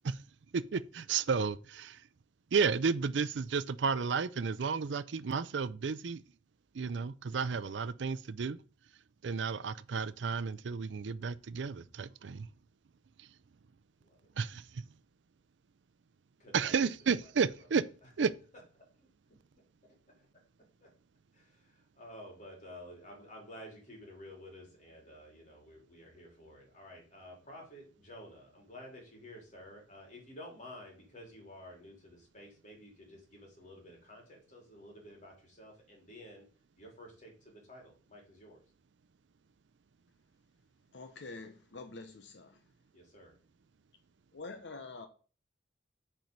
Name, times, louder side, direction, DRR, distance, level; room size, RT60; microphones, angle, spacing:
voice 1, 0.5-2.0 2.5-6.2 6.7-8.6 9.2-12.5 14.4-14.8 16.5-17.8 18.2-18.3, right 5 dB, 80° right, 0.5 m, -32 dB
voice 2, 16.4-18.3 18.7-18.8 19.3-20.3 20.8-20.9 21.3-36.4 36.8-38.6 42.9-43.4, left 1 dB, 45° left, 3.5 m, -52 dB
voice 3, 40.9-42.6 44.3-45.1, left 3 dB, 75° left, 0.9 m, -46 dB
9.2 x 4.5 x 5.4 m
head